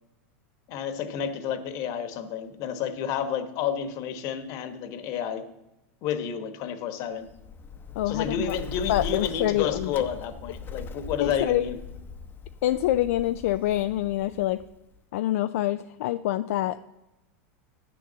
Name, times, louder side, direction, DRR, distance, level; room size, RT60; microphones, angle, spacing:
voice 1, 0.7-5.4 6.0-7.3 8.1-11.8, left 8 dB, 50° left, 10 dB, 1.2 m, -30 dB
Bird, 7.2-15.0, left 5 dB, 25° left, 0.8 m, -40 dB
voice 2, 8.0-8.5 8.9-9.9 11.2-11.7 12.6-14.6 15.1-16.9, left 14 dB, 75° left, 10 dB, 0.4 m, -26 dB
9.1 x 6.8 x 7.5 m, 0.96 s
supercardioid pair, 125°, 8 cm